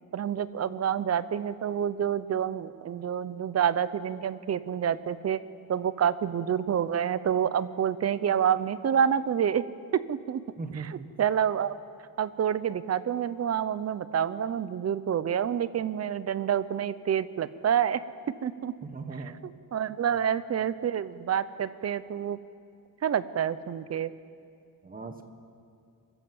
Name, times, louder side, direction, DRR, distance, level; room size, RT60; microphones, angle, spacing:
voice 1, 0.1-5.4 5.7-9.6 10.1-10.4 10.9-11.7 12.2-18.0 18.4-18.7 19.7-22.4 23.0-24.1, right 8 dB, 45° right, 15 dB, 0.7 m, -28 dB
voice 2, 10.6-11.1 18.8-19.4 20.6-20.7 24.8-25.2, right 4 dB, 25° right, 7 dB, 1.4 m, -38 dB
25.0 x 14.0 x 7.8 m, 2.4 s
wide cardioid pair, 160°, 34 cm